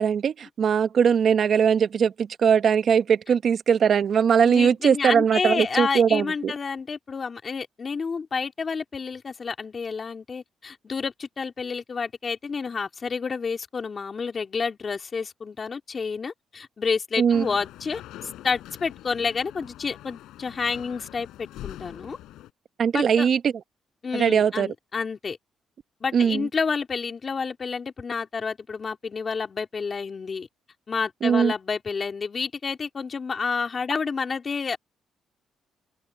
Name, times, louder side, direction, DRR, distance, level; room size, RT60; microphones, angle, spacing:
voice 1, 0.0-6.5 17.2-17.4 22.8-23.5 24.1-24.7 26.1-26.5 31.2-31.5, right 7 dB, 55° right, 0.9 m, -20 dB
voice 2, 4.4-18.0 18.4-22.2 22.9-23.3 24.0-25.4 26.0-30.5 30.9-34.8, left 5 dB, 40° left, 3.3 m, -29 dB
sound 1, 17.3-22.5, left 14 dB, 90° left, 6.5 m, -44 dB
open air
cardioid pair, 90°, 0 cm